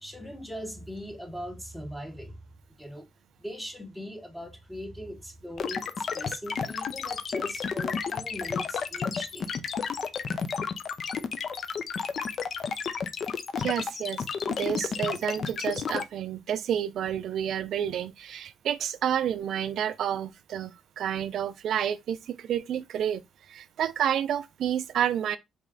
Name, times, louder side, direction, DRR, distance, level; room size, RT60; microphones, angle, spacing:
voice 1, 0.0-2.4 2.8-3.1 3.4-9.5, equal, 5° left, 1.2 m, -40 dB
sound 1, 5.6-16.0, left 6 dB, 55° left, 0.5 m, -31 dB
voice 2, 13.6-23.2 23.5-25.4, right 9 dB, 70° right, 0.3 m, -30 dB
4.2 x 3.1 x 3.7 m
cardioid pair, 90°, 0 cm